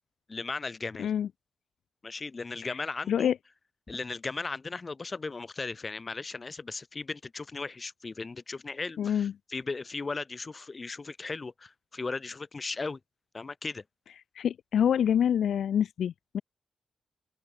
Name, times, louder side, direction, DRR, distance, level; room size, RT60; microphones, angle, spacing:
voice 1, 0.3-1.1 2.0-3.3 3.9-13.0 13.3-13.8, left 3 dB, 35° left, 3.9 m, -37 dB
voice 2, 9.0-9.3 14.4-16.4, left 9 dB, 85° left, 0.6 m, -26 dB
cardioid pair, 85°, 0 cm